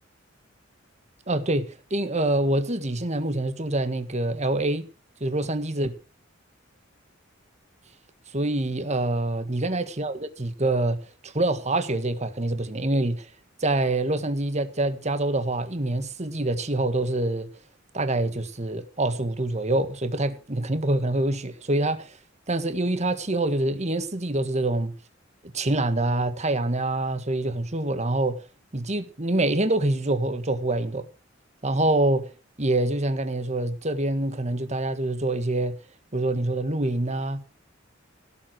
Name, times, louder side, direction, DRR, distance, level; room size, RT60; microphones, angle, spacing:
voice 1, 1.3-4.9 5.2-5.9 8.3-13.3 13.6-17.5 17.9-22.2 22.5-24.9 25.4-28.4 28.7-31.1 31.6-32.3 32.6-35.8 36.1-37.4, right 2 dB, 35° right, 1.7 m, -26 dB
17.0 x 7.9 x 6.3 m
head